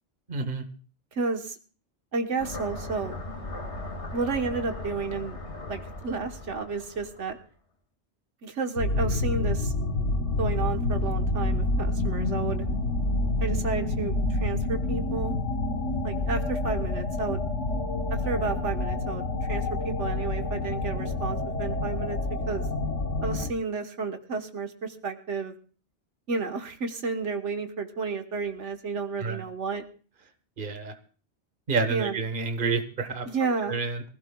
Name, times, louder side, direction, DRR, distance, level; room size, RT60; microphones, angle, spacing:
voice 1, 0.3-0.6 29.2-29.4 30.6-30.9 31.7-33.3 33.6-34.0, right 4 dB, 45° right, 8 dB, 1.4 m, -29 dB
voice 2, 1.1-1.5 2.1-3.2 4.1-5.4 5.7-7.4 8.4-9.7 10.4-12.6 13.4-15.3 16.0-17.4 18.1-19.2 19.5-22.2 22.5-22.6 23.2-25.5 26.3-29.8 31.9-32.2 33.3-33.8, right 4 dB, 85° right, 6 dB, 1.6 m, -31 dB
sound 1, 2.4-7.4, left 2 dB, 70° left, 2.5 m, -38 dB
sound 2, 8.8-23.5, left 2 dB, 85° left, 1.5 m, -28 dB
23.5 x 16.0 x 2.3 m, 0.40 s
omnidirectional pair, 1.2 m